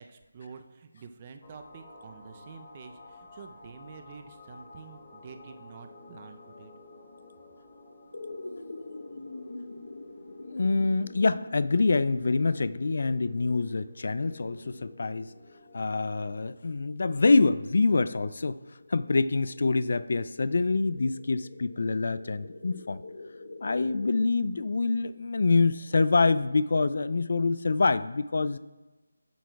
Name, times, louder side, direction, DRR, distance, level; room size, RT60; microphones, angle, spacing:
voice 1, 0.0-6.7, right 5 dB, 25° right, 7 dB, 0.6 m, -48 dB
sound 1, 1.4-15.8, left 2 dB, 30° left, 1.7 m, -52 dB
sound 2, 4.4-24.3, left 2 dB, 75° left, 1.2 m, -47 dB
voice 2, 10.5-15.3 15.7-18.6 18.9-23.0 23.6-28.6, left 3 dB, 55° left, 15 dB, 0.3 m, -26 dB
8.2 x 6.2 x 4.7 m, 1.1 s
figure-of-eight pair, 165°, 0 cm